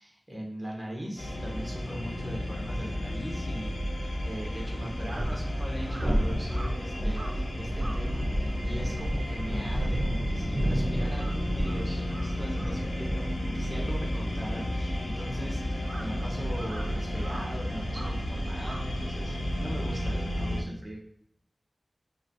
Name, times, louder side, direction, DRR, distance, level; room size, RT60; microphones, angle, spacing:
voice 1, 0.0-3.8 4.2-21.0, equal, 15° right, -2 dB, 1.2 m, -40 dB
sound 1, 1.2-20.6, equal, 85° left, 0.6 m, -32 dB
sound 2, 2.8-2.9 4.9-20.5, right 1 dB, 30° right, 0.8 m, -34 dB
Crow, 4.1-10.7 11.0-19.6, right 2 dB, 60° right, 0.5 m, -48 dB
3.1 x 2.6 x 4.1 m, 0.69 s
wide cardioid pair, 60°, 0 cm